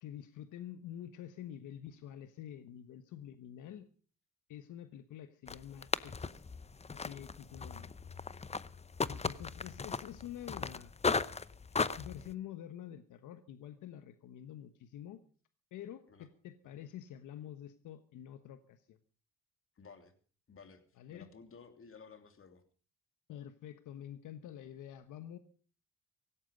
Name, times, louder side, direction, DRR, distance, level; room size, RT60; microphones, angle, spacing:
voice 1, 0.0-3.9 4.5-6.4 6.9-7.9 9.1-10.9 11.7-15.2 15.7-19.0 21.0-21.3 23.3-25.4, left 10 dB, 80° left, 10 dB, 1.2 m, -48 dB
sound 1, 5.5-12.3, left 4 dB, 20° left, 0.8 m, -37 dB
voice 2, 19.7-20.1 20.5-22.6, left 5 dB, 45° left, 8 dB, 3.1 m, -55 dB
17.0 x 16.0 x 5.2 m, 0.40 s
cardioid pair, 90°, 30 cm